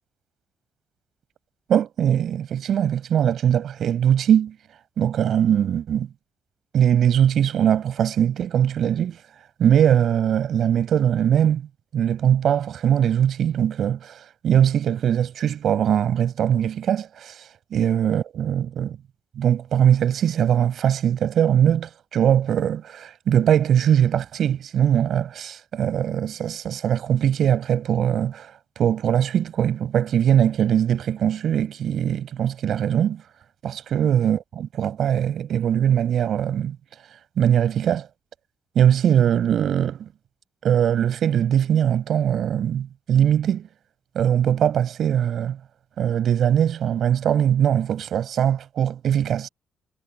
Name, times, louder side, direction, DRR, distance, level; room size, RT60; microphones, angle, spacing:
voice 1, 1.7-4.6 5.0-6.1 6.7-9.2 9.6-11.6 11.9-14.1 14.4-17.5 17.7-19.0 19.4-28.5 28.8-33.2 33.6-36.8 37.4-38.1 38.8-40.1 40.6-43.7 44.2-45.6 46.0-49.5, right 9 dB, 65° right, 5.2 m, -21 dB
cardioid pair, 90°, 0 cm